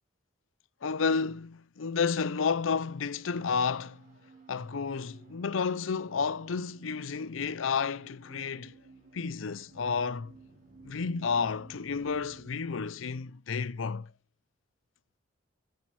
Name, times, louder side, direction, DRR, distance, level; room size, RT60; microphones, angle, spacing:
voice 1, 0.8-4.0 4.5-8.7 9.1-10.3 10.8-14.1, left 5 dB, 80° left, 0.6 m, -31 dB
sound 1, 2.3-12.6, right 3 dB, 40° right, 3.8 m, -57 dB
15.0 x 6.9 x 4.7 m
head